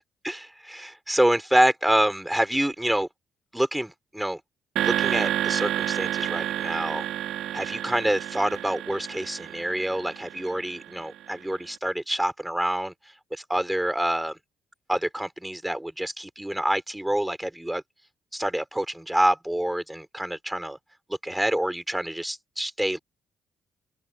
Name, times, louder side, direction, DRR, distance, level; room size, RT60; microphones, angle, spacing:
voice 1, 0.2-3.1 3.5-4.4 4.8-7.1 7.5-12.9 13.3-14.4 14.9-17.8 18.3-20.8 21.2-23.0, right 1 dB, 5° right, 3.5 m, -27 dB
sound 1, 4.8-11.1, right 11 dB, 80° right, 2.5 m, -30 dB
open air
cardioid pair, 90°, 0 cm